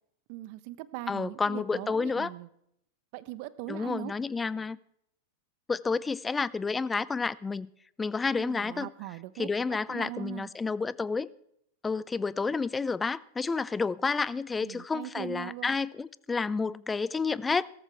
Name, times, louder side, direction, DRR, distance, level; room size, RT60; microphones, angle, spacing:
voice 1, 0.3-2.5 3.1-4.1 8.3-10.5 14.6-15.8, right 16 dB, 55° right, 0.9 m, -40 dB
voice 2, 1.1-2.3 3.7-4.8 5.7-7.7 8.0-8.9 9.4-11.3 11.8-17.7, left 4 dB, 15° left, 0.5 m, -30 dB
17.5 x 14.0 x 3.5 m
hypercardioid pair, 95°, 0 cm